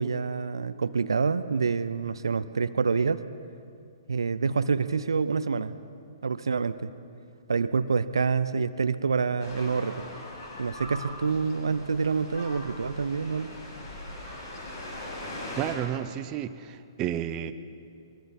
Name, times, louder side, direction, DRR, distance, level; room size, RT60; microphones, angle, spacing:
voice 1, 0.0-3.2 4.1-5.8 6.2-6.9 7.5-10.0 10.6-13.5, right 5 dB, 70° right, 13 dB, 0.7 m, -27 dB
sound 1, 9.4-15.8, left 1 dB, 50° left, 6.6 m, -40 dB
voice 2, 15.6-17.5, right 11 dB, 25° right, 10 dB, 0.8 m, -31 dB
23.0 x 21.5 x 5.4 m, 2.5 s
figure-of-eight pair, 120°, 2 cm